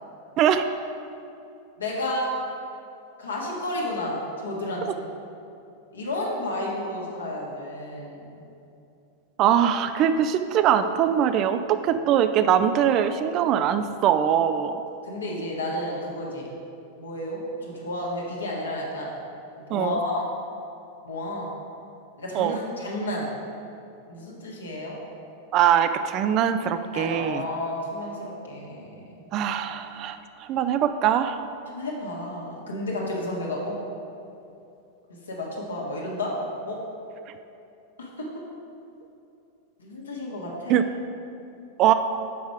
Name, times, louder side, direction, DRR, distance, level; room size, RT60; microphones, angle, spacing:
voice 1, 0.4-0.7 9.4-14.8 19.7-20.0 22.3-22.6 25.5-27.5 29.3-31.4 40.7-40.8 41.8-41.9, right 9 dB, 35° right, 10 dB, 0.3 m, -22 dB
voice 2, 1.8-2.4 3.2-4.9 5.9-8.3 15.0-16.5 17.0-19.1 19.7-20.2 21.0-21.5 22.2-23.3 24.1-25.0 26.9-28.9 31.7-33.8 35.3-36.4 36.7-36.8 38.0-38.3 39.8-40.8, left 1 dB, 70° left, -3 dB, 1.4 m, -31 dB
7.0 x 5.1 x 4.8 m, 2.7 s
figure-of-eight pair, 90°, 0 cm